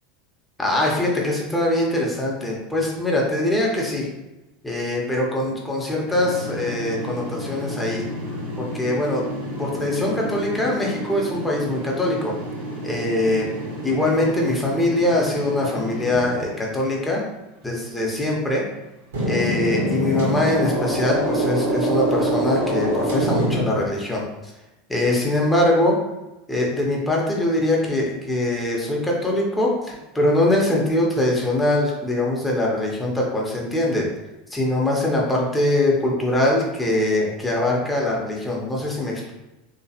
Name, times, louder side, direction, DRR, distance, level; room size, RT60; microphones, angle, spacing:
voice 1, 0.6-4.1 4.6-8.0 8.6-9.2 9.6-12.3 12.8-13.5 13.8-17.2 17.6-18.6 19.2-24.2 24.9-26.0 26.5-34.1 34.5-39.3, left 1 dB, 10° left, -2 dB, 1.0 m, -22 dB
sound 1, 6.1-16.5 19.1-23.6, right 1 dB, 75° right, 1.3 m, -27 dB
3.3 x 3.0 x 2.9 m, 1.0 s
hypercardioid pair, 85°, 0 cm